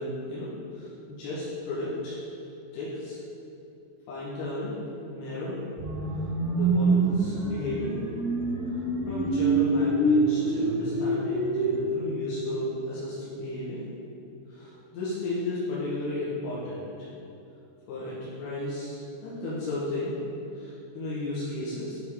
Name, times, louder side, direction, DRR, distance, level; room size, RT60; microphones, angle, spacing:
voice 1, 0.0-2.2 2.7-3.2 4.1-4.7 5.1-5.6 6.5-8.0 8.7-8.8 9.1-13.9 14.5-16.8 17.9-20.2 20.6-22.0, left 2 dB, 85° left, -9 dB, 3.9 m, -34 dB
sound 1, 5.8-11.8, right 2 dB, 70° right, 2.6 m, -25 dB
9.0 x 3.6 x 4.8 m, 2.9 s
omnidirectional pair, 5.7 m